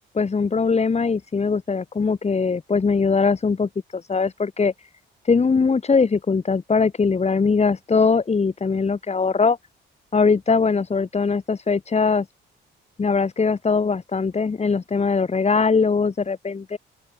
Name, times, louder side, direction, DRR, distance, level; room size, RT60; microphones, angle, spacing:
voice 1, 0.1-4.7 5.2-9.6 10.1-12.3 13.0-16.8, left 5 dB, 35° left, 6.0 m, -21 dB
open air
cardioid pair, 90°, 20 cm